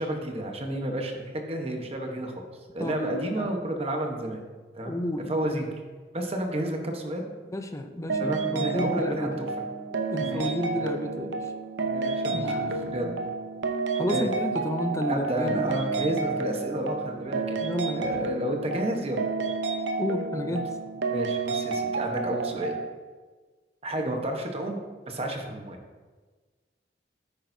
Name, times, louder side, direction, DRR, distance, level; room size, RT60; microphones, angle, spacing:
voice 1, 0.0-2.4 2.7-4.4 4.7-5.7 6.1-7.3 8.2-9.5 10.2-10.5 10.8-10.9 11.8-12.7 12.9-13.1 14.1-14.3 15.1-17.6 17.9-19.2 20.5-20.6 21.1-22.8 23.8-24.8 25.1-25.8, right 1 dB, 35° right, 3 dB, 1.1 m, -31 dB
voice 2, 2.8-3.5 4.8-5.3 7.5-9.4 10.1-11.5 12.3-13.2 14.0-15.8 17.6-18.1 20.0-20.7, left 1 dB, 15° left, 6 dB, 0.5 m, -31 dB
sound 1, 8.1-22.9, right 4 dB, 80° right, 0.7 m, -30 dB
10.0 x 8.8 x 2.7 m, 1.4 s
head